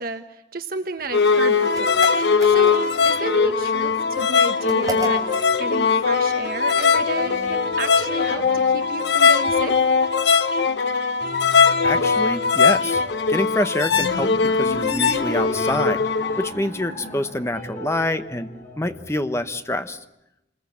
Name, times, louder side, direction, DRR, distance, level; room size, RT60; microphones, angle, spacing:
voice 1, 0.0-2.8 3.0-9.8 14.4-14.6, right 2 dB, 55° right, 7 dB, 1.2 m, -32 dB
sound 1, 1.0-19.6, left 2 dB, 45° left, 7.3 m, -37 dB
sound 2, 1.1-16.5, left 5 dB, 70° left, 1.0 m, -20 dB
sound 3, 1.7-3.1 4.7-5.5, right 2 dB, 20° right, 3.7 m, -32 dB
voice 2, 11.8-13.0 13.3-16.1 16.4-18.5 18.8-20.0, left 1 dB, 15° left, 9 dB, 1.0 m, -26 dB
28.0 x 21.0 x 8.5 m, 0.90 s
head